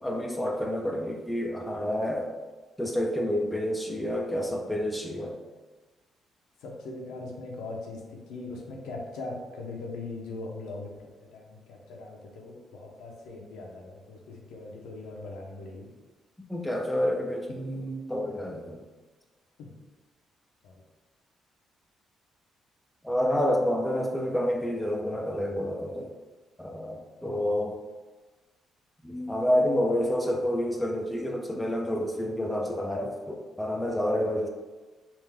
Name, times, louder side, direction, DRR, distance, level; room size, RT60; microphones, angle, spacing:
voice 1, 0.0-2.3 2.8-5.4 16.5-18.8 23.0-26.1 26.6-27.7 29.0-34.5, equal, 5° left, 0 dB, 0.5 m, -29 dB
voice 2, 6.6-15.9 19.6-19.7 20.6-20.8 27.4-27.8, left 2 dB, 90° left, -1 dB, 0.7 m, -40 dB
3.6 x 2.5 x 3.3 m, 1.3 s
cardioid pair, 90°, 0 cm